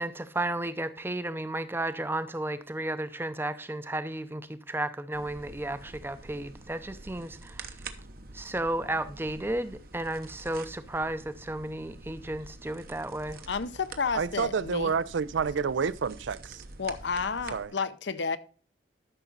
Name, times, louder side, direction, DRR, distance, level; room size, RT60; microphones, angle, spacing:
voice 1, 0.0-7.9 8.3-13.4, right 1 dB, 10° right, 0.6 m, -33 dB
sound 1, 5.1-17.7, right 3 dB, 50° right, 0.9 m, -47 dB
voice 2, 13.5-14.9 16.8-18.4, left 5 dB, 65° left, 0.7 m, -31 dB
voice 3, 14.1-16.6 17.5-17.7, right 6 dB, 75° right, 0.4 m, -29 dB
13.0 x 6.0 x 3.9 m
head